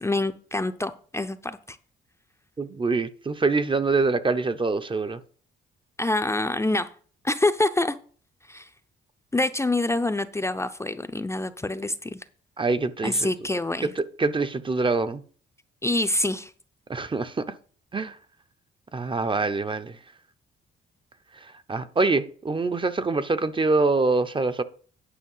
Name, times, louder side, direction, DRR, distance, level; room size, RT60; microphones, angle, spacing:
voice 1, 0.0-1.8 6.0-6.9 7.2-8.0 8.5-8.7 9.3-12.2 13.0-13.9 15.8-16.5, left 2 dB, 15° left, 0.6 m, -26 dB
voice 2, 2.6-5.2 12.6-13.3 13.8-15.2 16.9-17.5 17.9-18.2 18.9-20.0 21.7-24.6, right 3 dB, 25° right, 0.8 m, -25 dB
9.9 x 5.6 x 5.6 m
cardioid pair, 90°, 20 cm